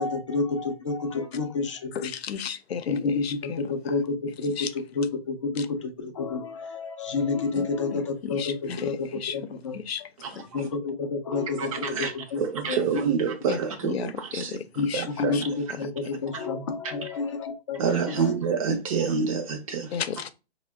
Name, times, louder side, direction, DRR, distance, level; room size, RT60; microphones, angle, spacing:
voice 1, 0.0-2.1 2.9-10.1 10.5-12.4 12.7-12.9 14.8-14.9 15.2-18.3 18.7-18.8, left 4 dB, 30° left, 0.4 m, -29 dB
voice 2, 2.0-3.6 4.6-4.7 7.6-9.4 9.7-10.0 10.4-10.5 13.5-13.6 13.9-15.0 15.3-15.4 19.9-20.3, left 7 dB, 80° left, 0.6 m, -34 dB
voice 3, 10.2-10.6 11.6-14.6 14.9-15.8 16.3-16.5 16.8-16.9 17.8-20.0, right 6 dB, 35° right, 0.7 m, -28 dB
4.1 x 2.1 x 3.4 m
hypercardioid pair, 155°, 31 cm